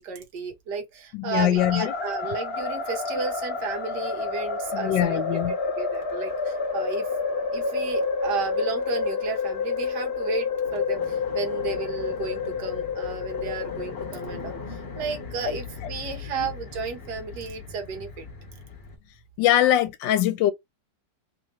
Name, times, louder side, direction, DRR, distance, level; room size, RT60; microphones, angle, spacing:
voice 1, 0.0-5.2 5.8-7.1 7.5-18.3, right 5 dB, 70° right, 1.6 m, -33 dB
voice 2, 1.1-1.9 4.7-5.5 16.4-16.5 19.4-20.5, left 12 dB, 85° left, 1.3 m, -22 dB
sound 1, 1.6-19.0, left 4 dB, 40° left, 1.1 m, -30 dB
3.5 x 2.9 x 3.0 m
omnidirectional pair, 2.0 m